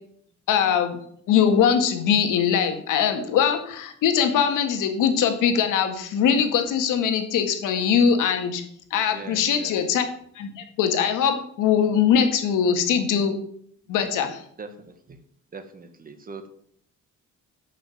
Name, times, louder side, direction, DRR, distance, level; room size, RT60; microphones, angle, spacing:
voice 1, 0.5-1.0 1.3-8.6 8.9-10.1 10.4-13.3 13.9-14.4, left 7 dB, 90° left, 6 dB, 1.9 m, -21 dB
voice 2, 9.1-9.8 14.6-14.7 15.5-16.5, right 4 dB, 30° right, 9 dB, 1.4 m, -40 dB
11.5 x 6.4 x 7.6 m, 0.65 s
cardioid pair, 145°, 31 cm